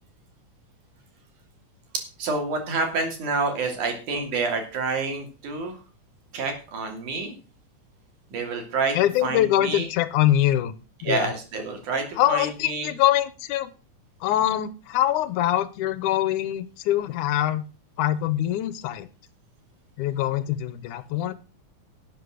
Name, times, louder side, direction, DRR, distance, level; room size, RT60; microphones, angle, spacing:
voice 1, 2.2-5.8 6.3-7.4 8.3-9.0 9.2-9.9 11.0-12.9, right 4 dB, 75° right, 4 dB, 4.2 m, -28 dB
voice 2, 8.9-10.8 11.0-11.3 12.2-13.7 14.2-17.6 18.0-19.1 20.0-21.3, left 13 dB, 85° left, 16 dB, 2.3 m, -23 dB
12.0 x 7.7 x 6.3 m, 0.34 s
omnidirectional pair, 3.5 m